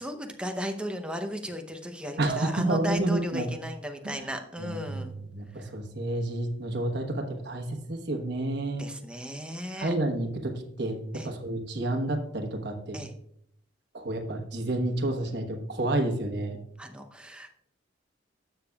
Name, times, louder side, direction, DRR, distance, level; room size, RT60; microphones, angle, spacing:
voice 1, 0.0-5.2 5.6-5.7 8.8-9.9 11.1-11.3 12.9-13.1 16.8-17.5, equal, 5° right, 5 dB, 0.7 m, -36 dB
voice 2, 2.2-3.5 4.0-4.2 4.6-5.0 5.3-8.8 9.8-10.5 10.8-11.0 11.2-13.0 13.9-16.6, right 1 dB, 55° right, 4 dB, 1.1 m, -29 dB
12.0 x 6.9 x 2.3 m, 0.73 s
head